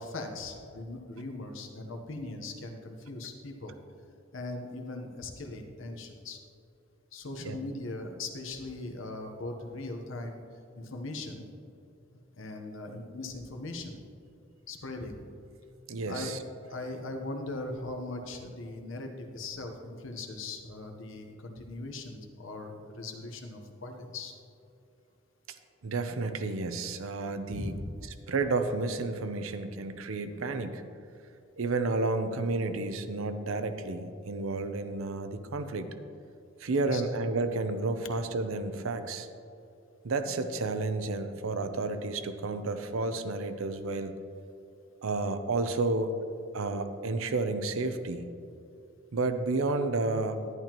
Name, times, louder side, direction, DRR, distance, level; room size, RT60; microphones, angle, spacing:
voice 1, 0.0-3.7 4.3-6.4 7.1-10.4 10.8-11.4 12.3-14.0 14.7-15.2 16.1-16.3 16.7-24.3 27.5-27.9 36.8-37.0, left 2 dB, 65° left, 4 dB, 1.0 m, -39 dB
voice 2, 15.9-16.4 25.8-27.7 28.3-30.8 31.6-35.9 36.6-39.3 40.0-44.1 45.0-46.1 46.5-48.3 49.1-50.5, right 3 dB, 75° right, 9 dB, 0.6 m, -31 dB
11.0 x 10.5 x 3.0 m, 2.6 s
head